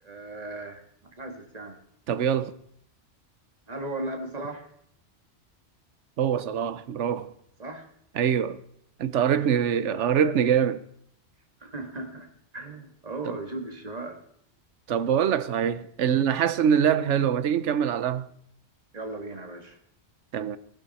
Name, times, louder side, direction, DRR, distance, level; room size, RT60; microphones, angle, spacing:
voice 1, 0.0-1.8 3.7-4.7 7.6-7.9 9.3-10.3 11.6-12.3 12.5-14.2 18.9-19.8, right 2 dB, 35° right, 2.1 m, -37 dB
voice 2, 2.1-2.5 6.2-7.3 8.2-8.6 9.0-10.8 13.3-13.4 14.9-18.3 20.3-20.6, right 8 dB, 75° right, 1.1 m, -24 dB
18.0 x 12.0 x 4.2 m
omnidirectional pair, 1.2 m